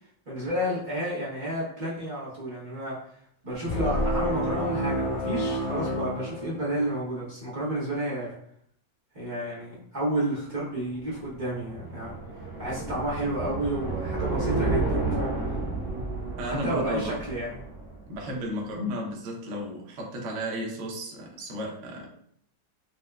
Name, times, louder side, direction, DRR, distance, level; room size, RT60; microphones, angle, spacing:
voice 1, 0.3-3.0 3.4-8.4 9.1-12.1 12.6-15.3 16.4-17.6, right 1 dB, 35° right, -9 dB, 0.7 m, -31 dB
sound 1, 3.6-7.0, equal, 85° left, 0.7 m, -29 dB
sound 2, 10.9-18.2, right 2 dB, 25° left, 0.5 m, -31 dB
voice 2, 16.4-17.2 18.1-22.1, equal, 80° right, -1 dB, 0.6 m, -33 dB
4.2 x 2.0 x 2.3 m, 0.67 s
omnidirectional pair, 2.1 m